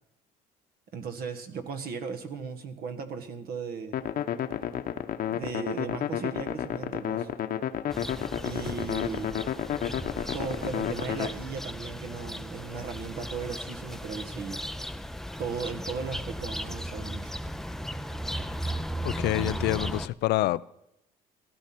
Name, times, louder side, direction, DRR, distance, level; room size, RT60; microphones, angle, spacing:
voice 1, 0.9-4.0 5.3-7.3 8.4-9.4 10.3-14.6 15.4-17.4, right 5 dB, 65° right, 1.7 m, -36 dB
sound 1, 3.9-11.3, left 10 dB, 60° left, 1.0 m, -31 dB
sound 2, 7.9-20.1, equal, ahead, 0.5 m, -36 dB
voice 2, 18.6-20.6, left 17 dB, 75° left, 0.5 m, -28 dB
16.5 x 12.0 x 6.0 m
cardioid pair, 110°, 17 cm